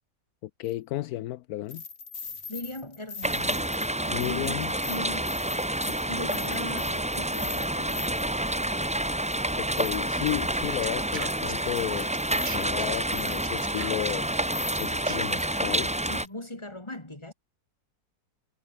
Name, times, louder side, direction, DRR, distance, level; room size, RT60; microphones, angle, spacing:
voice 1, 0.4-1.8 4.1-4.7 9.6-12.1 12.5-14.3 14.8-16.0, left 15 dB, 80° left, 1.1 m, -33 dB
sound 1, 0.6-0.7 1.7-8.3 8.8-8.9 9.3-10.6 11.4-11.5 12.0-12.6 12.9-13.8 14.2-14.3 14.5-15.9 16.3-16.4, left 5 dB, 60° left, 2.4 m, -42 dB
voice 2, 2.2-4.5 4.9-8.3 16.1-17.3, left 1 dB, 20° left, 3.3 m, -40 dB
sound 2, 3.2-16.3, right 1 dB, 5° right, 0.7 m, -28 dB
sound 3, 10.7-15.7, right 7 dB, 40° right, 0.8 m, -41 dB
omnidirectional pair, 1.6 m